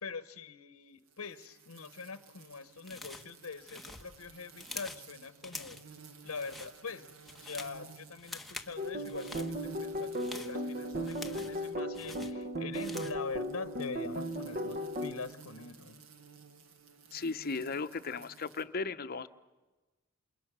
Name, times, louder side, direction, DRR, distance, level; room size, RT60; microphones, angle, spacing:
voice 1, 0.0-5.8 6.2-7.1 7.4-16.0, left 4 dB, 75° left, 12 dB, 0.8 m, -43 dB
sound 1, 1.1-11.9 13.0-18.6, right 5 dB, 75° right, 1.7 m, -55 dB
sound 2, 2.8-3.3 3.6-5.1 5.4-5.9 6.3-6.7 7.1-7.8 8.2-8.7 9.0-9.5 10.0-11.6 11.9-13.2, left 2 dB, ahead, 1.1 m, -46 dB
sound 3, 8.8-15.1, equal, 40° right, 1.2 m, -36 dB
voice 2, 17.1-19.3, left 4 dB, 45° left, 10 dB, 0.8 m, -36 dB
28.0 x 27.5 x 6.1 m, 1.2 s
head